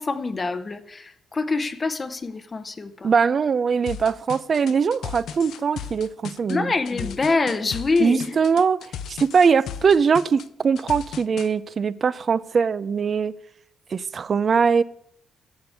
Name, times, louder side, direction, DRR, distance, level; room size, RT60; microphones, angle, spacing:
voice 1, 0.0-3.1 6.5-8.4, left 3 dB, 30° left, 0.8 m, -25 dB
voice 2, 3.0-6.7 8.0-13.3 13.9-14.8, right 6 dB, 45° right, 0.5 m, -21 dB
sound 1, 3.9-11.5, left 8 dB, 75° left, 0.6 m, -36 dB
11.0 x 7.0 x 7.9 m
cardioid pair, 90°, 0 cm